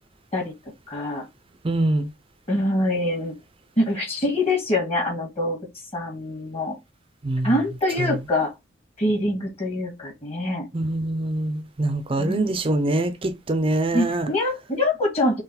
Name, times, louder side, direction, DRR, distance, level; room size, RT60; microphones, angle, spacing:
voice 1, 0.9-1.3 2.5-3.3 3.8-5.6 5.9-6.8 7.4-8.5 9.0-10.7 12.2-12.5 13.9-15.4, left 1 dB, 35° left, 1.6 m, -24 dB
voice 2, 1.6-2.1 7.2-7.5 8.0-8.1 10.7-14.3, right 1 dB, 30° right, 0.5 m, -24 dB
3.8 x 3.1 x 4.2 m
head